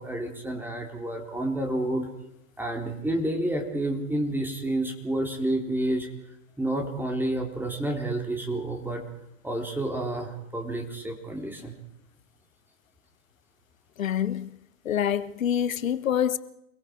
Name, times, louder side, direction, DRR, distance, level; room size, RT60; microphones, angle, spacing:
voice 1, 0.0-2.1 2.6-6.1 6.6-9.0 9.4-11.7, right 1 dB, 5° right, 4.0 m, -29 dB
voice 2, 14.0-14.6 14.8-16.4, left 9 dB, 75° left, 1.4 m, -26 dB
28.5 x 21.5 x 4.8 m
hypercardioid pair, 100°, 41 cm